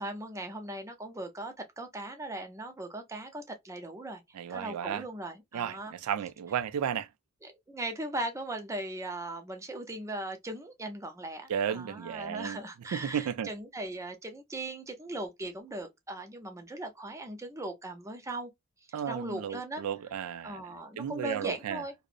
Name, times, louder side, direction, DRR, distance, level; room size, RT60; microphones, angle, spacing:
voice 1, 0.0-4.2 4.5-5.9 7.4-18.5 19.1-19.8 20.4-21.9, right 1 dB, 15° right, 0.4 m, -39 dB
voice 2, 4.3-5.0 5.5-7.1 11.5-12.6 12.9-13.5 18.9-21.8, right 8 dB, 85° right, 0.3 m, -34 dB
2.5 x 2.0 x 2.4 m
head